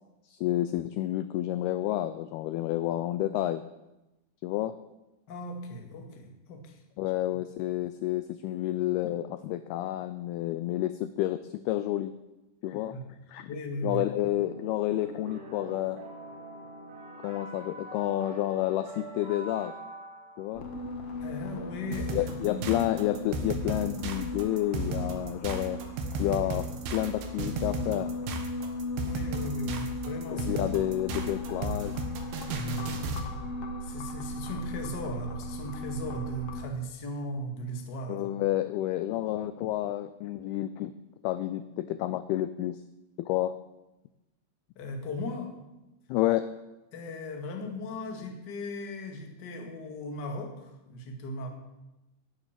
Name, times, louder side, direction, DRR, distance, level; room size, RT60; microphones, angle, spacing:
voice 1, 0.3-3.6 4.4-4.7 7.0-12.1 12.6-13.0 13.3-13.5 13.8-16.0 17.2-19.8 20.4-20.7 22.1-25.8 26.2-28.1 30.3-32.0 38.1-40.9 41.2-42.8 43.2-43.5 46.1-46.5, left 14 dB, 85° left, 12 dB, 2.3 m, -30 dB
voice 2, 5.3-6.8 12.9-13.0 13.4-14.0 21.2-22.8 29.1-30.5 33.8-38.2 44.7-45.6 46.9-51.5, left 1 dB, 40° left, 3 dB, 1.5 m, -37 dB
sound 1, 14.2-21.2, right 2 dB, 90° right, 5.8 m, -45 dB
sound 2, 20.5-36.6, left 2 dB, 65° left, 1.4 m, -37 dB
sound 3, 21.9-33.3, right 3 dB, 70° right, 3.6 m, -34 dB
18.5 x 9.0 x 7.6 m, 0.99 s
omnidirectional pair, 5.2 m